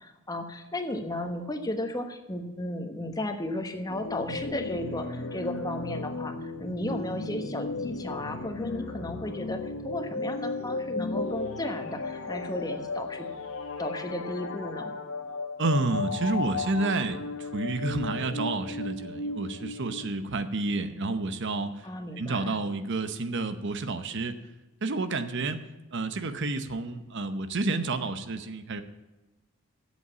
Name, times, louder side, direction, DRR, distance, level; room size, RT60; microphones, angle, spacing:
voice 1, 0.0-13.3 13.8-14.9 21.8-22.6, left 1 dB, 20° left, 6 dB, 1.1 m, -34 dB
sound 1, 3.9-20.0, left 3 dB, 70° left, 1.3 m, -35 dB
voice 2, 15.6-21.8 22.2-24.4 24.8-25.6 25.9-28.8, right 3 dB, 55° right, 10 dB, 0.8 m, -30 dB
8.2 x 8.0 x 8.4 m, 1.1 s
head